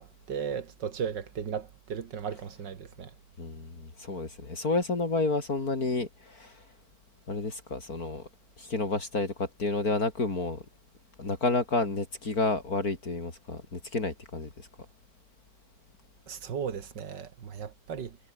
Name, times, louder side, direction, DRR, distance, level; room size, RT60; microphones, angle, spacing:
voice 1, 0.0-3.1 16.3-18.2, right 7 dB, 90° right, 2.4 m, -36 dB
voice 2, 3.4-6.6 7.3-8.3 8.6-10.6 11.2-14.7, left 3 dB, 55° left, 4.1 m, -30 dB
omnidirectional pair, 1.8 m